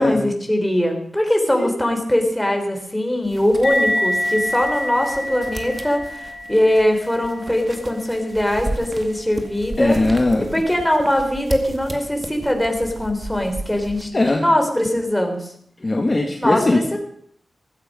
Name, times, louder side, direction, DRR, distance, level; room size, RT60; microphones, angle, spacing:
voice 1, 0.0-10.0 10.5-15.5 16.4-17.0, left 1 dB, 5° left, 3 dB, 3.8 m, -21 dB
sound 1, 3.2-14.1, right 2 dB, 30° right, 2.1 m, -35 dB
sound 2, 3.6-10.5, left 1 dB, 55° left, 3.7 m, -28 dB
voice 2, 9.8-10.5 14.1-14.5 15.8-16.8, left 2 dB, 30° left, 1 dB, 2.0 m, -19 dB
16.0 x 14.5 x 5.5 m, 0.67 s
wide cardioid pair, 95°, 0 cm